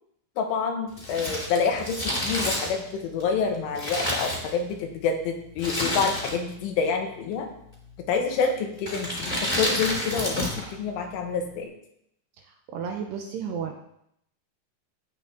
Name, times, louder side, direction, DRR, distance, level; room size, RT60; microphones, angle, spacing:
voice 1, 0.4-7.5 8.1-9.3 9.6-10.5 10.7-11.7, left 5 dB, 85° left, 2 dB, 4.0 m, -27 dB
Crumpling crinkling, 0.9-4.9 5.6-6.6 6.9-7.0 7.8-8.1 8.8-10.7 11.0-11.1, left 1 dB, 10° left, 2.2 m, -29 dB
voice 2, 12.4-13.8, right 7 dB, 80° right, 3 dB, 2.6 m, -34 dB
13.5 x 8.7 x 4.0 m, 0.74 s
omnidirectional pair, 5.6 m